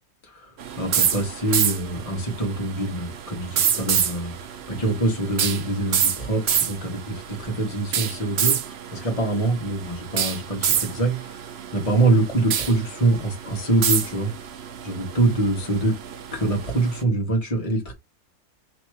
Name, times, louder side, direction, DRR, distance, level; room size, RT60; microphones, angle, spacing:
voice 1, 0.2-11.4 11.7-14.3 14.8-16.0 16.3-17.9, right 2 dB, 25° left, 1.3 m, -24 dB
sound 1, 0.6-17.0, right 8 dB, 55° right, 0.7 m, -28 dB
3.3 x 3.1 x 4.6 m
omnidirectional pair, 1.7 m